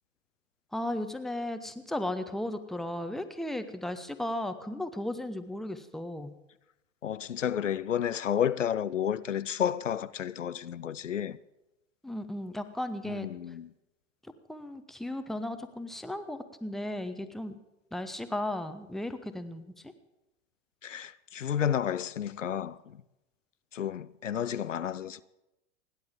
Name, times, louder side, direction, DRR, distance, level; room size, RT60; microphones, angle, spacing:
voice 1, 0.7-6.3 12.0-13.3 14.5-17.6 17.9-19.6, left 1 dB, ahead, 0.9 m, -35 dB
voice 2, 7.0-11.4 13.0-13.7 20.8-23.0 23.7-25.2, left 9 dB, 80° left, 0.5 m, -31 dB
29.0 x 10.5 x 3.7 m
figure-of-eight pair, 90°, 37 cm